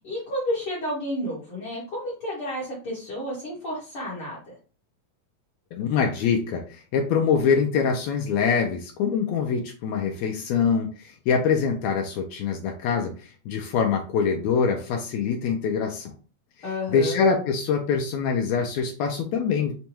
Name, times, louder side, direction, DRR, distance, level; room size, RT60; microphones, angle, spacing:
voice 1, 0.0-4.5 16.6-17.2, left 1 dB, 55° left, -7 dB, 1.7 m, -31 dB
voice 2, 5.7-16.1 16.9-19.7, left 6 dB, 80° left, 4 dB, 1.6 m, -24 dB
5.3 x 2.2 x 2.9 m, 0.36 s
omnidirectional pair, 3.6 m